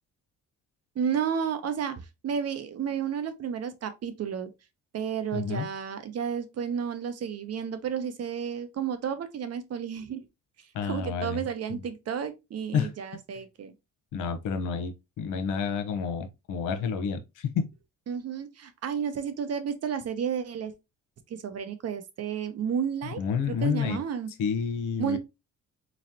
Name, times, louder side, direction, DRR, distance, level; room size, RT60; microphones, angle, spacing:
voice 1, 1.0-4.5 4.9-10.2 10.8-13.7 18.1-20.7 21.3-23.2 23.5-24.3 25.0-25.2, right 7 dB, 55° right, 0.8 m, -32 dB
voice 2, 5.3-5.7 10.7-11.4 11.7-11.8 12.7-12.9 14.1-17.7 23.2-24.0 24.4-25.2, left 6 dB, 90° left, 0.9 m, -29 dB
4.0 x 3.1 x 2.7 m
cardioid pair, 90°, 30 cm